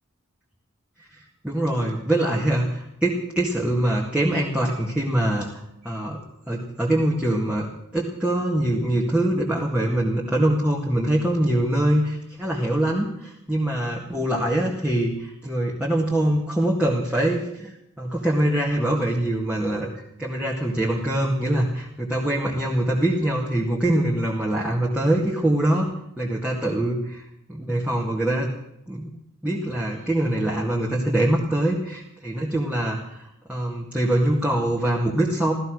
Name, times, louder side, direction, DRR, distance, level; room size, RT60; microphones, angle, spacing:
voice 1, 1.0-6.2 6.5-7.7 7.9-17.7 18.0-19.9 20.2-25.9 26.2-27.2 27.5-28.5 28.9-29.1 29.4-35.5, right 1 dB, 5° right, -4 dB, 2.0 m, -23 dB
15.0 x 14.0 x 6.3 m, 0.78 s
head